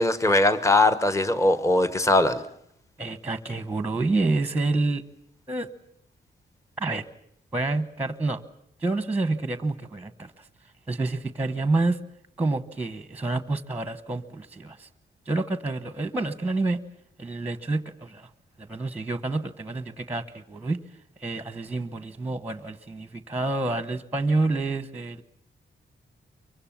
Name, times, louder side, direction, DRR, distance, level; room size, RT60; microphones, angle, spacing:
voice 1, 0.0-2.4, left 2 dB, 15° left, 1.1 m, -20 dB
voice 2, 3.0-5.0 5.5-5.7 6.8-7.0 7.5-8.4 8.8-10.3 10.9-12.0 12.4-14.9 15.3-16.8 17.2-18.3 18.6-20.8 21.2-25.2, right 2 dB, 10° right, 1.0 m, -28 dB
24.5 x 23.5 x 7.3 m
wide cardioid pair, 180°, 19 cm